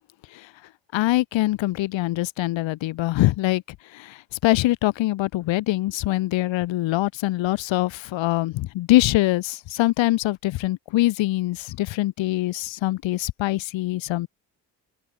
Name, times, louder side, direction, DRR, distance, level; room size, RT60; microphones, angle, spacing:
voice 1, 0.9-3.6 3.9-14.3, left 17 dB, 70° left, 1.6 m, -23 dB
open air
hypercardioid pair, 45°, 46 cm